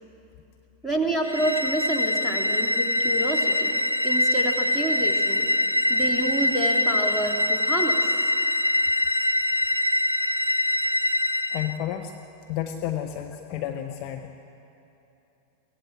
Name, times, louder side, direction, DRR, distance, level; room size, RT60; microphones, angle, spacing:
voice 1, 0.8-5.5 5.9-8.1, right 1 dB, 5° left, -1 dB, 2.8 m, -29 dB
sound 1, 1.2-11.8, left 1 dB, 85° right, 0.4 m, -24 dB
voice 2, 11.5-12.1 12.5-14.4, left 11 dB, 40° left, 4 dB, 1.1 m, -31 dB
24.0 x 17.0 x 7.5 m, 2.8 s
figure-of-eight pair, 90°, 0 cm